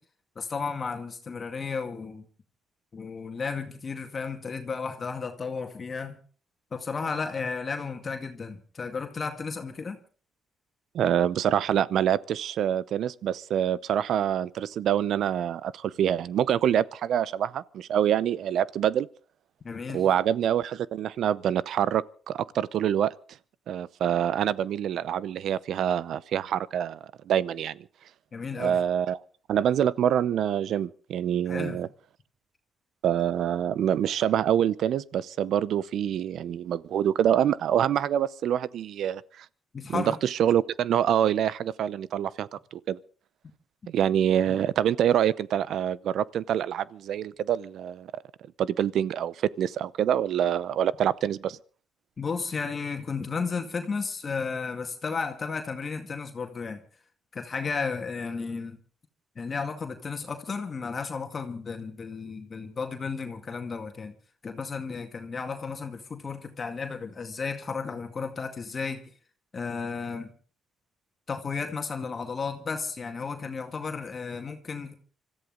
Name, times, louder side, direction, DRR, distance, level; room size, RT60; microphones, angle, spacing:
voice 1, 0.4-2.3 2.9-6.2 6.7-10.0 19.6-20.1 28.3-28.8 31.5-31.8 39.7-40.2 44.5-44.6 52.2-56.8 57.3-58.8 59.4-64.1 64.4-69.0 69.5-70.3 71.3-75.0, left 5 dB, 40° left, 2.1 m, -33 dB
voice 2, 10.9-19.1 19.9-23.1 23.7-27.0 27.3-27.8 28.6-29.2 29.5-31.9 33.0-39.5 39.9-43.0 43.9-48.1 48.6-51.6, right 10 dB, 70° right, 0.7 m, -26 dB
25.5 x 14.0 x 3.9 m
cardioid pair, 90°, 0 cm